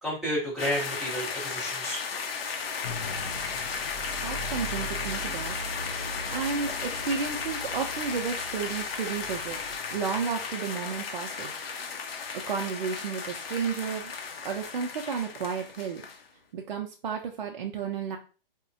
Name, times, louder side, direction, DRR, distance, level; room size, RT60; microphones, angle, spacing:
voice 1, 0.0-2.0, equal, ahead, -8 dB, 0.7 m, -31 dB
sound 1, 0.6-16.2, left 5 dB, 80° left, 0.7 m, -35 dB
sound 2, 2.8-9.8, equal, 40° left, 0.4 m, -40 dB
voice 2, 4.2-5.6 6.3-9.6 9.9-11.5 12.1-14.1 14.4-16.0 16.5-18.2, right 6 dB, 50° right, 2 dB, 0.5 m, -32 dB
3.5 x 2.1 x 2.6 m, 0.35 s
hypercardioid pair, 155°, 29 cm